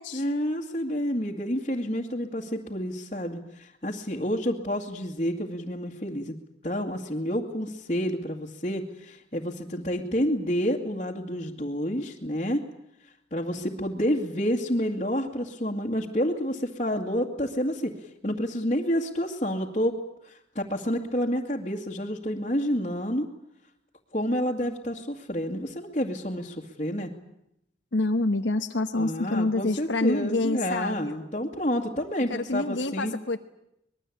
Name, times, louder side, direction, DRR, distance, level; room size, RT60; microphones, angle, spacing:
voice 1, 0.1-6.4 6.6-12.6 13.3-17.9 18.2-19.9 20.2-23.3 24.1-27.1 28.9-33.1, equal, 35° left, -4 dB, 2.2 m, -29 dB
voice 2, 27.9-31.2 32.3-33.4, left 2 dB, 75° left, 5 dB, 1.2 m, -27 dB
24.5 x 21.0 x 8.7 m, 0.80 s
head